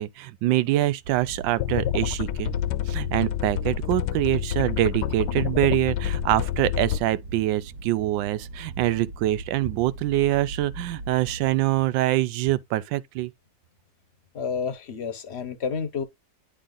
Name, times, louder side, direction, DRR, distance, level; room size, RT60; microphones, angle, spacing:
voice 1, 0.0-2.5 2.9-13.3, right 15 dB, 90° right, 1.3 m, -25 dB
sound 1, 1.0-11.5, right 2 dB, 55° right, 1.0 m, -40 dB
sound 2, 1.6-7.0, left 11 dB, 80° left, 1.2 m, -28 dB
voice 2, 14.3-16.0, left 6 dB, 50° left, 0.8 m, -30 dB
10.0 x 3.7 x 3.7 m
omnidirectional pair, 2.0 m